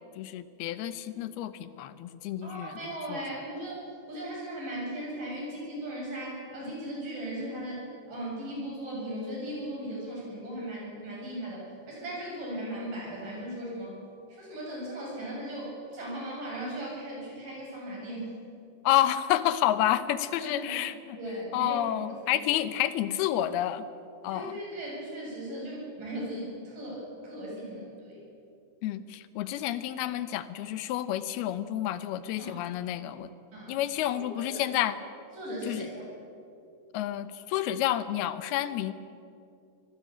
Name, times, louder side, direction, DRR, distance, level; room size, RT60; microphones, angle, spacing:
voice 1, 0.2-2.8 3.1-3.2 18.8-21.2 21.5-23.8 24.2-24.5 28.8-33.3 33.7-35.0 35.7-35.9 36.9-38.9, left 12 dB, 90° left, 13 dB, 2.9 m, -29 dB
voice 2, 2.4-3.8 4.1-14.0 14.3-18.3 20.4-21.8 22.3-22.5 24.3-28.2 32.4-32.6 33.5-33.8 34.4-34.6 35.3-36.0, right 1 dB, 60° right, -3 dB, 9.3 m, -37 dB
25.5 x 16.5 x 8.8 m, 2.5 s
omnidirectional pair, 4.4 m